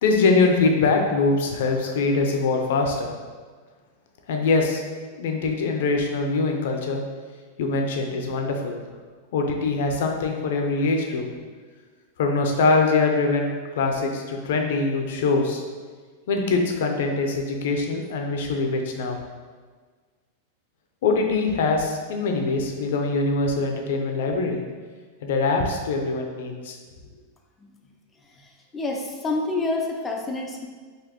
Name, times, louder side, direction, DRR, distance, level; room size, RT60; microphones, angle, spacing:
voice 1, 0.0-3.1 4.3-4.8 5.1-7.0 7.6-8.7 9.3-11.3 12.2-15.6 16.3-19.2 21.0-24.6 25.2-26.8, left 3 dB, 70° left, 2 dB, 0.6 m, -23 dB
voice 2, 28.7-30.7, left 2 dB, 15° left, 1 dB, 0.5 m, -27 dB
4.1 x 2.6 x 2.9 m, 1.5 s
supercardioid pair, 135°, 0 cm